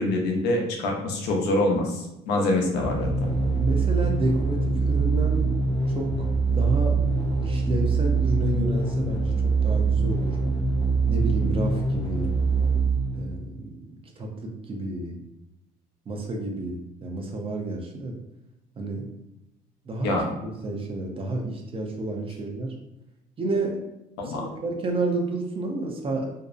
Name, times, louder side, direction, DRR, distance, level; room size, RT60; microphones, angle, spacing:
voice 1, 0.0-3.3 20.0-20.2 24.2-24.4, left 2 dB, 90° left, 1 dB, 0.6 m, -25 dB
sound 1, 2.8-13.5, right 4 dB, 30° left, 0.5 m, -24 dB
voice 2, 3.6-5.5 5.9-6.3 6.5-7.0 7.4-10.4 11.0-12.3 13.1-13.7 14.2-15.1 16.1-18.2 18.8-19.1 19.9-22.7 23.4-23.8 24.2-26.3, right 2 dB, 35° right, 2 dB, 0.5 m, -30 dB
2.5 x 2.0 x 2.4 m, 0.89 s
cardioid pair, 110°, 17 cm